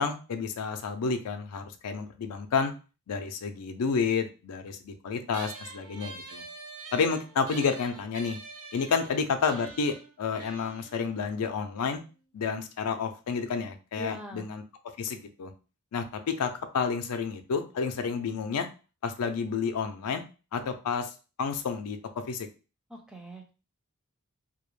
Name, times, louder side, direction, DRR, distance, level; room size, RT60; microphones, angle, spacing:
voice 1, 0.0-2.7 3.1-6.4 6.9-8.4 8.7-12.0 12.3-14.6 15.0-15.5 15.9-18.7 19.0-20.2 20.5-21.1 21.4-22.0 22.3-22.5, left 5 dB, 90° left, 7 dB, 0.4 m, -30 dB
sound 1, 5.3-12.1, right 3 dB, 75° right, 0.6 m, -46 dB
voice 2, 14.0-14.5 22.9-23.5, right 1 dB, 5° right, 1 dB, 0.4 m, -42 dB
2.3 x 2.1 x 3.0 m, 0.33 s
head